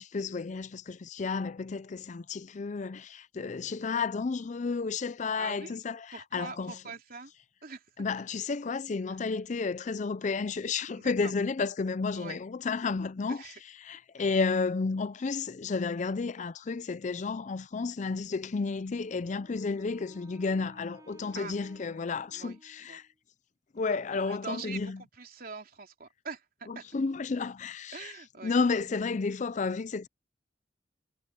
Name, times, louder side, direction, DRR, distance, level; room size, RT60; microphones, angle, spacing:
voice 1, 0.0-6.8 8.0-13.5 13.8-23.0 23.7-25.0 26.7-28.1 28.4-30.1, left 4 dB, 40° left, 0.4 m, -32 dB
voice 2, 5.4-5.8 6.1-7.3 7.6-7.9 9.1-9.2 11.0-11.3 12.1-12.4 13.3-13.6 21.3-21.6 22.3-23.0 24.1-26.9 27.9-28.5, right 4 dB, 55° right, 3.5 m, -43 dB
Wind instrument woodwind instrument, 18.9-23.2, right 1 dB, 20° right, 4.3 m, -56 dB
head